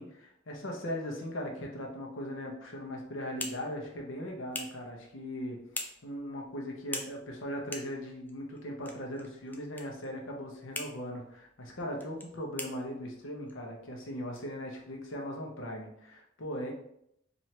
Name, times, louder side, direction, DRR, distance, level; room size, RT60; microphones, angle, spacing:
voice 1, 0.0-5.6 6.0-16.7, equal, 80° left, 0 dB, 0.8 m, -39 dB
sound 1, 2.8-15.2, left 2 dB, 10° left, 0.4 m, -46 dB
4.4 x 2.6 x 3.2 m, 0.76 s
head